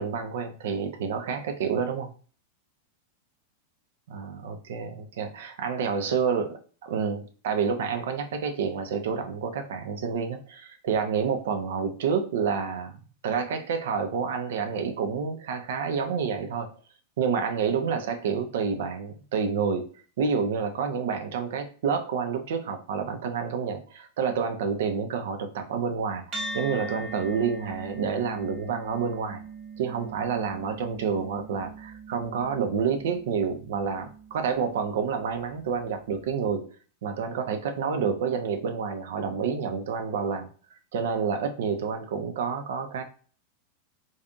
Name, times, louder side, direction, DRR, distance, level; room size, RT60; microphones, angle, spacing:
voice 1, 0.0-2.1 4.1-16.7 17.2-19.9 20.2-29.4 29.8-36.7 37.0-40.5 40.9-43.0, right 6 dB, 55° right, 7 dB, 0.4 m, -29 dB
sound 1, 26.3-35.0, right 2 dB, 35° right, 0.8 m, -41 dB
2.6 x 2.4 x 2.4 m, 0.41 s
figure-of-eight pair, 90°, 0 cm